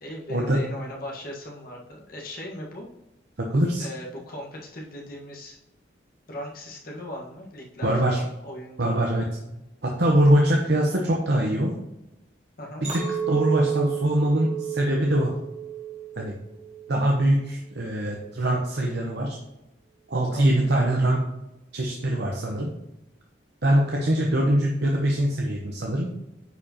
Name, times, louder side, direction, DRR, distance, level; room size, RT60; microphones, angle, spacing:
voice 1, 0.0-2.9 3.8-5.6 6.3-8.9 12.6-12.9 20.3-20.7 23.7-24.1, left 1 dB, 50° left, -1 dB, 1.4 m, -38 dB
voice 2, 3.4-3.9 7.8-8.2 8.8-9.2 9.8-11.7 12.9-13.0 13.3-15.3 16.2-16.3 16.9-19.4 20.1-21.2 21.7-22.7 23.6-26.1, right 1 dB, 60° right, 0 dB, 0.9 m, -23 dB
Chink clink, 12.8-17.2 17.6-18.1, right 9 dB, 35° right, 2.1 m, -32 dB
9.6 x 4.8 x 2.9 m, 0.93 s
head